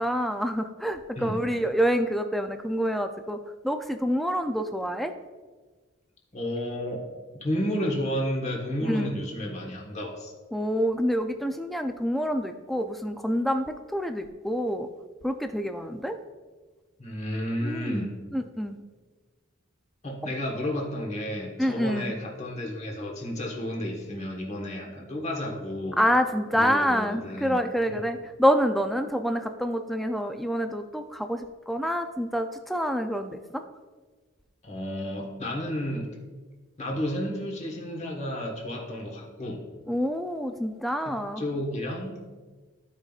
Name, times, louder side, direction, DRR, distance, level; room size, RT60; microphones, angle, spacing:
voice 1, 0.0-3.4 3.6-5.1 8.8-9.1 10.5-14.9 15.2-16.1 17.6-18.1 18.3-18.8 21.6-22.1 26.0-33.6 39.9-41.4, equal, ahead, 6 dB, 0.4 m, -27 dB
voice 2, 6.3-7.1 7.3-10.3 17.0-18.2 20.0-26.0 26.5-27.6 27.8-28.0 34.6-36.2 36.8-39.6 41.0-42.2, equal, 30° left, -1 dB, 1.3 m, -32 dB
14.5 x 5.2 x 2.4 m, 1.3 s
head